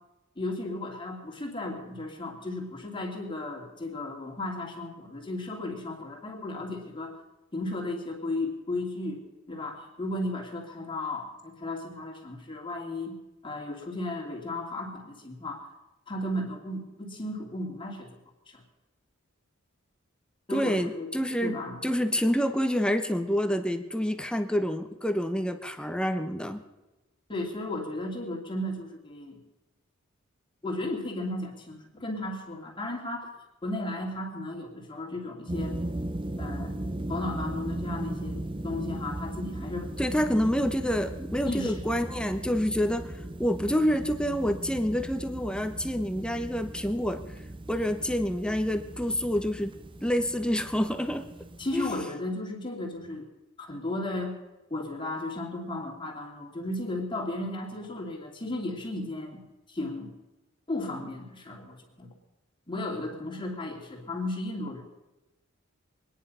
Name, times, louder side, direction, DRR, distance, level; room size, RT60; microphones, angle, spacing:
voice 1, 0.4-7.2 7.5-9.2 9.5-13.2 13.4-15.7 16.1-18.2 18.5-18.6 20.5-21.1 21.4-21.9 27.3-29.4 30.6-33.3 33.6-35.8 36.4-36.8 37.1-39.9 41.5-41.8 51.6-53.3 53.6-54.3 54.7-59.4 59.7-60.1 60.7-62.1 62.7-64.8, left 2 dB, 25° left, 0 dB, 2.8 m, -35 dB
voice 2, 20.5-21.6 21.8-26.6 40.0-43.1 43.4-47.2 47.7-49.7 50.0-51.2 51.7-52.0, equal, 5° left, 8 dB, 1.0 m, -27 dB
sound 1, 35.5-52.0, right 1 dB, 25° right, 0.7 m, -37 dB
24.0 x 10.0 x 5.6 m, 1.0 s
head